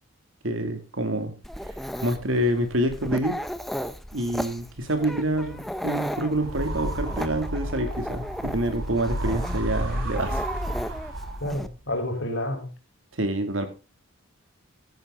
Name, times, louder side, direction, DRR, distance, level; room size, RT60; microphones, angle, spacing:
voice 1, 0.4-1.4 1.7-1.8 2.0-3.4 4.1-10.4 13.2-13.7, right 1 dB, 65° right, 8 dB, 2.5 m, -27 dB
Dog, 1.4-11.7, equal, ahead, 0.7 m, -35 dB
sound 1, 6.3-11.7, right 1 dB, 85° right, 3.5 m, -31 dB
voice 2, 11.4-12.7, left 1 dB, 60° left, 4 dB, 4.5 m, -29 dB
14.5 x 11.0 x 3.8 m, 0.31 s
head